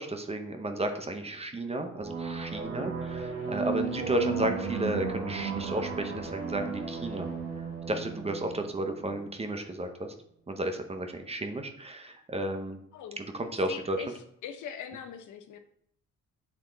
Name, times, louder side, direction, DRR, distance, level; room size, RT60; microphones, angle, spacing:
voice 1, 0.0-7.3 7.9-10.1 10.5-12.8 13.2-14.0, right 1 dB, 20° right, 6 dB, 0.8 m, -33 dB
sound 1, 1.9-9.3, right 5 dB, 50° right, 1.6 m, -35 dB
voice 2, 13.7-14.1 14.4-15.6, left 8 dB, 75° left, 8 dB, 0.7 m, -41 dB
6.9 x 3.5 x 3.9 m, 0.70 s
cardioid pair, 90°, 30 cm